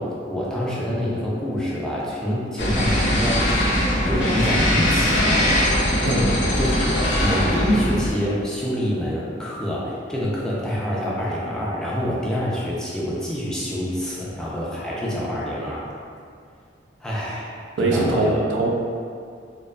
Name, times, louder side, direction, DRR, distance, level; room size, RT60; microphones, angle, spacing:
voice 1, 0.0-3.5 4.0-5.5 6.5-15.9 17.0-18.4, equal, 5° left, -7 dB, 0.4 m, -26 dB
sound 1, 2.6-8.1, equal, 75° left, 0.5 m, -21 dB
voice 2, 6.0-6.4 17.8-18.7, right 2 dB, 85° right, -2 dB, 0.4 m, -21 dB
2.5 x 2.2 x 2.3 m, 2.2 s
head